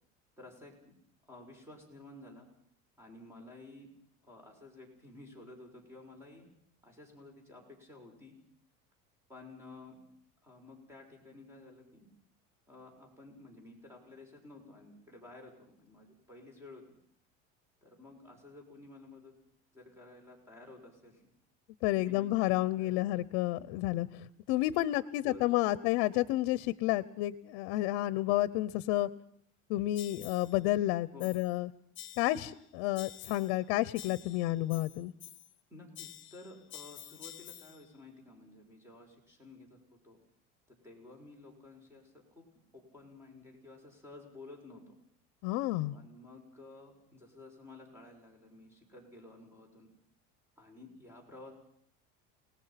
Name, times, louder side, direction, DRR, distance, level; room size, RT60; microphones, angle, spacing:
voice 1, 0.4-0.8 1.3-2.5 3.0-3.9 4.2-6.5 6.8-8.4 9.3-10.0 10.4-12.1 12.7-16.8 17.8-19.3 19.7-21.2 21.9-23.0 25.0-25.6 31.1-31.3 35.7-40.2 40.8-42.4 42.7-45.0 45.9-49.9 50.6-51.5, left 2 dB, 10° right, 2 dB, 6.1 m, -53 dB
voice 2, 21.8-29.1 29.7-31.7 32.2-35.1 45.4-45.9, left 16 dB, 75° left, 18 dB, 0.8 m, -30 dB
sound 1, 30.0-30.6 31.2-31.6 32.0-32.6 33.0-33.6 34.0-35.6 36.0-37.9, left 13 dB, 40° left, 1.5 m, -50 dB
29.5 x 19.0 x 5.9 m, 0.65 s
cardioid pair, 140°, 31 cm